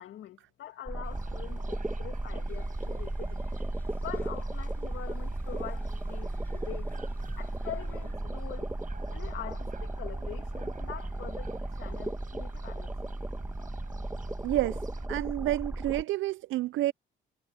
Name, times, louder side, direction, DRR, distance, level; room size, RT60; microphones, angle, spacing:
voice 1, 0.0-3.4 4.0-6.9 7.4-8.7 9.1-13.1, left 11 dB, 75° left, 2.2 m, -44 dB
sound 1, 0.9-16.0, right 1 dB, 10° right, 1.9 m, -35 dB
sound 2, 1.0-15.1, right 6 dB, 40° right, 5.6 m, -50 dB
sound 3, 2.5-8.1, left 1 dB, 10° left, 7.8 m, -59 dB
voice 2, 14.4-14.8 15.1-16.9, right 15 dB, 80° right, 0.5 m, -29 dB
cardioid pair, 90°, 20 cm